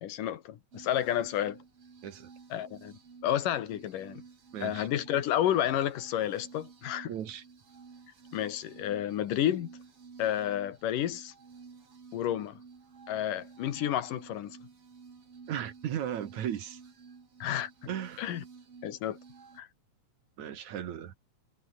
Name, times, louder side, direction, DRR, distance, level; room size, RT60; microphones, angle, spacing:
voice 1, 0.0-1.6 2.5-2.9 3.2-4.2 4.6-7.1 8.3-9.7 10.2-11.3 12.1-12.6 13.1-14.6 17.4-17.7 18.2-18.4 18.8-19.2 19.6-19.7, left 11 dB, 80° left, 3.2 m, -30 dB
sound 1, 0.7-19.6, right 5 dB, 45° right, 4.1 m, -53 dB
voice 2, 4.5-4.9 7.1-7.4 15.5-16.8 17.9-18.2 20.4-21.1, right 10 dB, 65° right, 2.9 m, -36 dB
omnidirectional pair, 3.8 m